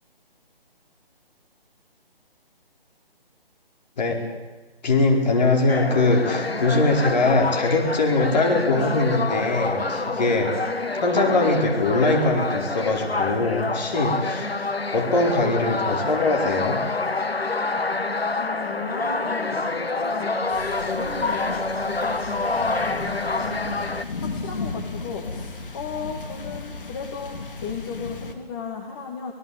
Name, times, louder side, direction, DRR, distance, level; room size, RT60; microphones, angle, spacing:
voice 1, 4.8-10.5 10.9-16.8, left 2 dB, 45° left, 1 dB, 4.9 m, -22 dB
sound 1, 5.7-24.0, left 3 dB, 90° left, 1.6 m, -27 dB
voice 2, 18.4-23.8 24.2-29.3, left 5 dB, 25° left, 0 dB, 2.0 m, -35 dB
sound 2, 20.5-28.3, left 3 dB, 60° left, 2.9 m, -35 dB
26.0 x 18.0 x 8.8 m, 1.2 s
figure-of-eight pair, 150°, 30 cm